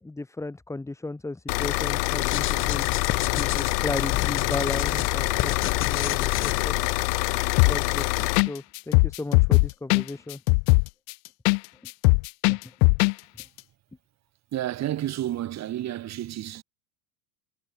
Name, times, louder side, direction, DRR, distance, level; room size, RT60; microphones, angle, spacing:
voice 1, 0.0-2.9 3.3-7.1 7.6-10.4 11.8-11.9 12.5-12.6, left 2 dB, 5° left, 1.6 m, -35 dB
sound 1, 1.5-8.4, left 24 dB, 75° left, 1.5 m, -26 dB
sound 2, 2.2-7.0, left 14 dB, 25° left, 0.7 m, -31 dB
sound 3, 7.6-8.0 8.4-8.5 8.8-11.6 11.9-13.1 13.4-13.5, left 40 dB or more, 60° left, 1.1 m, -19 dB
voice 2, 14.5-16.6, right 13 dB, 35° right, 2.1 m, -30 dB
supercardioid pair, 145°, 49 cm